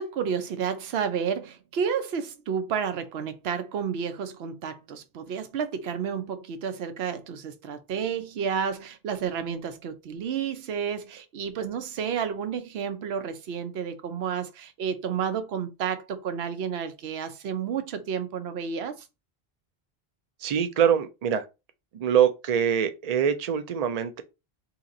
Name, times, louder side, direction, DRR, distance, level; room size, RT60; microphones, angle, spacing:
voice 1, 0.0-19.1, right 7 dB, 80° right, 0.9 m, -31 dB
voice 2, 20.4-21.4 21.9-24.2, right 8 dB, 50° right, 0.5 m, -24 dB
2.9 x 2.9 x 3.7 m
omnidirectional pair, 1.1 m